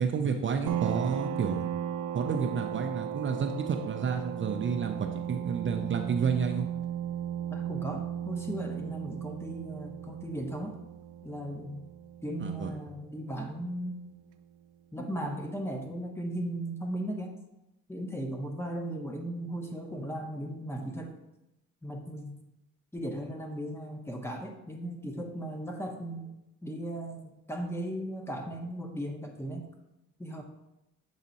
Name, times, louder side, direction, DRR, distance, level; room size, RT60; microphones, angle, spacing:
voice 1, 0.0-1.6 2.1-6.7 12.4-12.7, right 6 dB, 40° right, 4 dB, 0.6 m, -30 dB
sound 1, 0.7-13.9, right 10 dB, 85° right, 0.5 m, -36 dB
voice 2, 7.5-10.7 11.2-11.8 12.2-14.0 14.9-17.4 17.9-21.2 21.8-22.4 22.9-26.3 26.6-29.7 30.2-30.4, right 1 dB, 10° left, 3 dB, 1.0 m, -37 dB
7.2 x 4.1 x 4.1 m, 0.90 s
cardioid pair, 90°, 30 cm